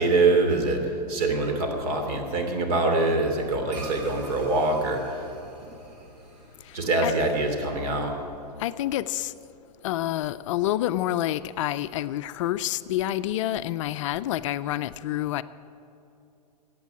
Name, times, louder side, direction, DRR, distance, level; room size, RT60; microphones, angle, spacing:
voice 1, 0.0-5.2 6.7-8.1, right 2 dB, 60° right, 3 dB, 3.0 m, -24 dB
sound 1, 3.7-8.3, right 3 dB, 80° right, 3.6 m, -45 dB
voice 2, 8.6-9.3 9.8-15.4, left 13 dB, 50° left, 13 dB, 0.4 m, -28 dB
15.0 x 8.4 x 9.6 m, 2.8 s
hypercardioid pair, 140°, 21 cm